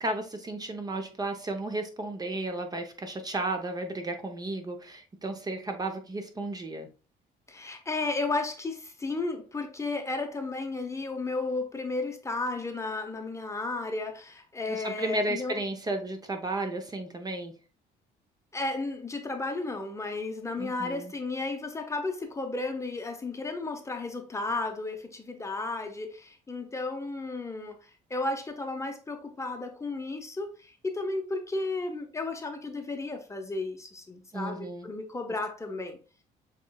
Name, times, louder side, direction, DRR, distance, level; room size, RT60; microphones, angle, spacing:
voice 1, 0.0-6.9 14.7-17.5 20.6-21.1 34.3-34.9, right 2 dB, 25° right, 0.7 m, -33 dB
voice 2, 7.5-15.6 18.5-36.0, left 3 dB, 15° left, 0.8 m, -33 dB
6.9 x 3.1 x 2.3 m
cardioid pair, 110°, 17 cm